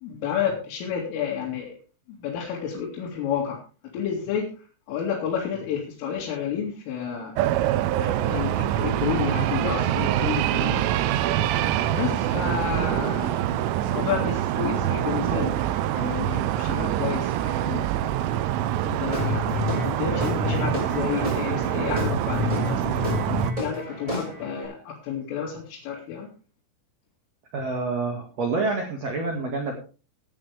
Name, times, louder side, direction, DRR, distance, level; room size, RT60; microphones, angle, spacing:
voice 1, 0.0-1.7 2.1-3.6 3.9-4.5 4.9-7.3 8.0-10.8 11.9-13.5 13.9-15.5 15.9-17.9 18.8-19.5 19.8-23.0 23.6-26.3, left 8 dB, 80° left, -4 dB, 5.0 m, -30 dB
sound 1, 7.4-23.5, right 12 dB, 85° right, 3.4 m, -25 dB
Guitar / Drum, 19.1-24.7, left 3 dB, 10° right, 6.0 m, -30 dB
voice 2, 27.5-29.7, right 3 dB, 50° right, 2 dB, 2.2 m, -27 dB
17.5 x 9.6 x 3.5 m, 0.36 s
omnidirectional pair, 5.8 m